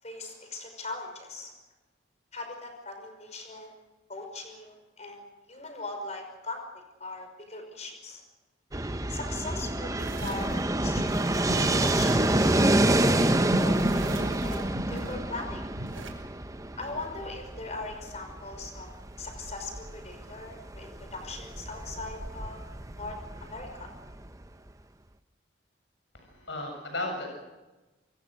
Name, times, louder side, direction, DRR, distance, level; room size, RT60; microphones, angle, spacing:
voice 1, 0.0-1.5 2.3-3.8 4.1-6.6 7.0-8.2 9.1-11.1 11.8-12.6 13.0-14.1 14.4-15.6 16.8-18.9 19.2-22.6 22.9-23.9, left 3 dB, 35° left, 5 dB, 5.6 m, -40 dB
Fixed-wing aircraft airplane, 8.7-24.4, right 1 dB, 15° right, 0.8 m, -28 dB
sound 1, 10.0-10.6 10.9-12.8 13.0-16.1, right 1 dB, 85° right, 6.0 m, -38 dB
voice 2, 26.1-27.3, left 2 dB, 65° left, 3 dB, 7.6 m, -35 dB
26.0 x 23.5 x 6.6 m, 1.1 s
head